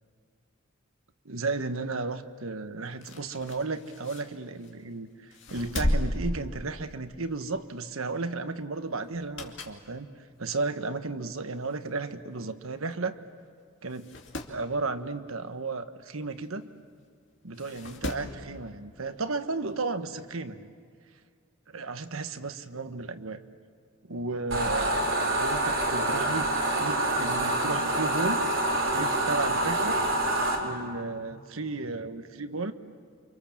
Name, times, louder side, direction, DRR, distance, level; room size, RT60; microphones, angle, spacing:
voice 1, 1.2-10.1 10.4-13.2 13.8-14.1 14.5-16.7 17.4-20.7 21.7-23.4 24.0-26.5 26.8-28.5 28.9-30.0 30.6-32.7, right 3 dB, 80° right, 9 dB, 1.3 m, -34 dB
sound 1, 2.9-4.8 5.3-7.2 7.6-7.8 9.1-9.9 10.3-10.4 11.3-11.4 11.7-11.8 11.9-12.0 12.9-13.1 13.4-13.5 13.9-14.6 16.4-16.5 17.5-18.4 19.7-19.8, left 1 dB, 60° left, 2.5 m, -34 dB
sound 2, 24.5-30.6, right 1 dB, 65° right, 4.2 m, -26 dB
29.5 x 26.0 x 7.4 m, 2.1 s
head